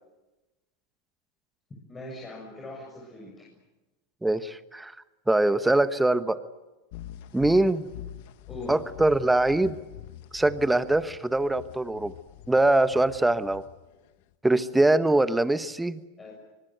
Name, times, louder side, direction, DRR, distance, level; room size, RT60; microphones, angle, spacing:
voice 1, 1.9-3.5 8.5-8.8 16.2-16.5, left 2 dB, 20° left, -1 dB, 7.2 m, -41 dB
voice 2, 4.2-4.9 5.3-6.4 7.3-7.9 8.7-9.8 10.3-12.1 12.5-13.6 14.4-16.0, right 2 dB, 5° right, 13 dB, 1.2 m, -23 dB
sound 1, 6.9-14.3, left 13 dB, 65° left, 1.3 m, -45 dB
25.5 x 21.0 x 9.3 m, 1.1 s
hypercardioid pair, 105°, 0 cm